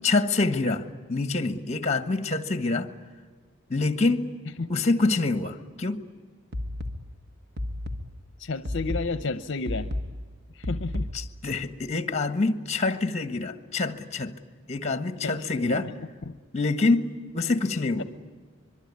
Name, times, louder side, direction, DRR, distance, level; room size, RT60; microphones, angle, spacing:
voice 1, 0.0-2.9 3.7-4.3 4.7-6.0 11.1-14.4 14.7-15.9 16.5-18.0, left 3 dB, 30° left, 11 dB, 1.4 m, -26 dB
sound 1, 6.5-11.5, left 1 dB, 50° right, 1.7 m, -34 dB
voice 2, 8.4-9.9 10.5-11.1 14.9-15.0 15.2-16.3 18.0-18.1, left 3 dB, 60° left, 12 dB, 0.7 m, -32 dB
25.0 x 23.0 x 9.7 m, 1.5 s
head